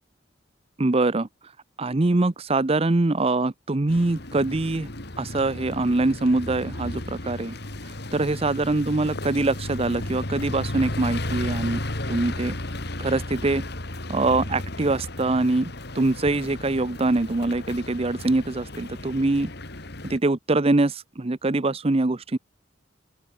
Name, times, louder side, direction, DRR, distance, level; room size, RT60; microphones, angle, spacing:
voice 1, 0.8-1.3 1.8-4.9 5.2-7.5 8.1-11.8 12.1-12.6 13.0-13.6 14.1-19.5 20.0-22.4, right 2 dB, 30° right, 0.7 m, -23 dB
sound 1, 3.9-20.2, left 1 dB, 60° left, 3.1 m, -34 dB
open air
head